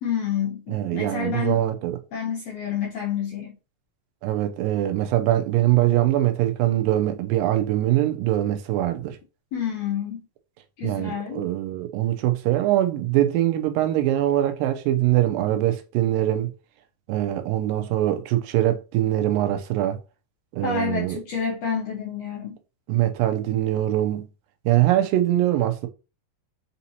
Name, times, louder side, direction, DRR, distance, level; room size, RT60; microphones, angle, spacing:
voice 1, 0.0-1.6 2.1-3.6 9.5-10.2 10.8-11.4 20.6-22.6, left 7 dB, 80° left, 1.6 m, -28 dB
voice 2, 0.7-2.0 4.2-9.2 10.8-16.5 17.1-20.0 20.5-21.2 22.9-24.3 24.7-25.9, right 13 dB, 90° right, 2.3 m, -23 dB
6.0 x 2.7 x 2.7 m
omnidirectional pair, 4.0 m